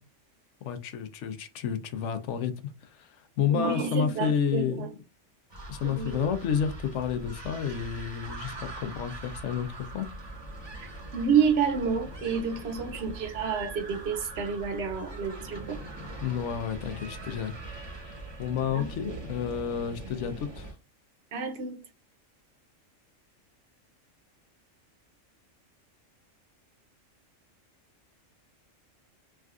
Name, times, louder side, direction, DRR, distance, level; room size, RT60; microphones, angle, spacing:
voice 1, 0.6-5.0 5.7-10.1 16.2-20.8, left 8 dB, 70° left, 0.8 m, -31 dB
voice 2, 3.5-4.9 5.8-6.3 10.8-15.8 18.7-19.2 21.3-21.8, right 6 dB, 60° right, 0.8 m, -29 dB
sound 1, 5.5-20.7, right 2 dB, 25° right, 0.8 m, -42 dB
3.5 x 2.4 x 2.3 m
omnidirectional pair, 1.3 m